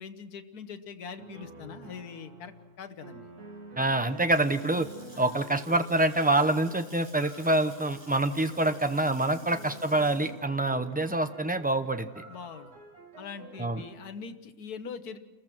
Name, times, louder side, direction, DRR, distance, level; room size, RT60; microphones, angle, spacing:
voice 1, 0.0-3.3 5.1-5.2 9.4-9.5 12.3-12.7 13.2-15.2, left 6 dB, 90° left, 9 dB, 1.6 m, -42 dB
sound 1, 1.2-14.0, right 2 dB, 90° right, 2.9 m, -49 dB
voice 2, 3.8-4.9 5.2-12.2 13.6-13.8, right 2 dB, 10° right, 9 dB, 0.5 m, -26 dB
Water tap faucet / Sink (filling or washing) / Splash splatter, 4.0-12.7, right 1 dB, 55° right, 7.4 m, -54 dB
29.5 x 14.5 x 6.1 m, 1.2 s
omnidirectional pair, 1.6 m